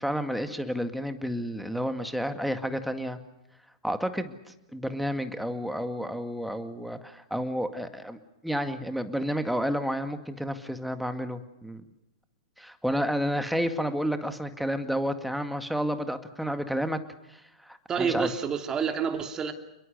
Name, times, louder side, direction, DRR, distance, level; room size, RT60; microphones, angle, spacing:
voice 1, 0.0-3.2 3.8-4.4 4.7-11.8 12.6-17.0 17.3-18.3, equal, ahead, 2.0 m, -30 dB
voice 2, 17.9-19.5, right 6 dB, 20° right, 2.8 m, -28 dB
29.0 x 22.0 x 6.7 m
figure-of-eight pair, 105°, 3 cm